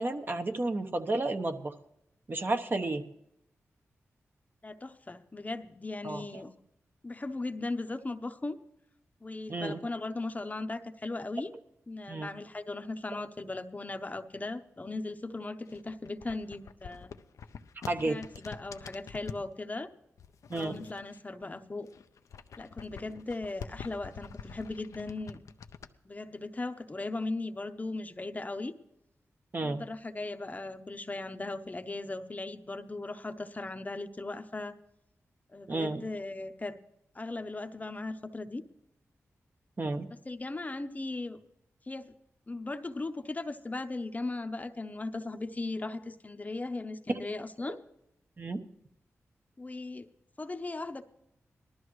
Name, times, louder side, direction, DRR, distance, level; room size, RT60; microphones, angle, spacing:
voice 1, 0.0-1.7 2.3-3.0 6.0-6.3 9.5-9.8 12.1-12.3 17.9-18.2 20.5-20.8 29.5-29.8 35.7-36.0 39.8-40.1 47.1-47.3 48.4-48.6, right 2 dB, 40° right, 7 dB, 1.0 m, -32 dB
voice 2, 4.6-6.5 7.0-8.6 9.2-11.5 11.9-17.1 18.0-19.9 20.5-21.9 22.6-25.4 26.0-28.7 29.6-34.8 35.5-36.8 37.1-38.6 40.2-41.4 41.9-42.1 42.5-47.8 49.6-50.1 50.4-51.0, left 2 dB, 30° left, 9 dB, 0.8 m, -38 dB
sound 1, 15.7-19.5 20.2-21.5 21.8-25.9, left 6 dB, 80° left, 0.5 m, -46 dB
19.0 x 13.0 x 3.1 m, 0.81 s
cardioid pair, 60°, 5 cm